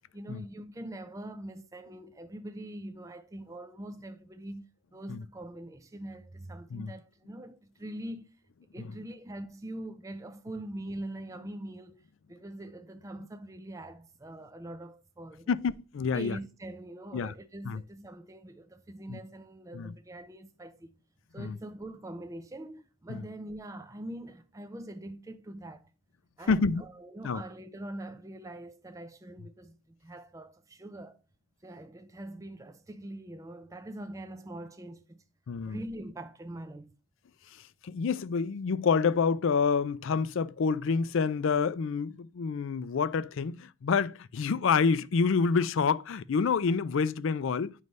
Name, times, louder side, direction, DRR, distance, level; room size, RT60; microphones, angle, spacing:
voice 1, 0.1-8.4 8.7-12.0 12.3-15.6 16.1-20.9 21.3-25.9 26.4-31.2 31.6-35.2 35.7-37.0, right 1 dB, 15° right, 0.4 m, -43 dB
voice 2, 15.5-16.4 17.1-17.3 17.7-17.8 19.1-19.2 19.7-19.9 21.4-21.6 23.1-23.2 26.5-26.8 27.2-27.4 35.5-35.8 37.8-47.7, left 5 dB, 60° left, 0.4 m, -28 dB
9.3 x 3.2 x 5.3 m
head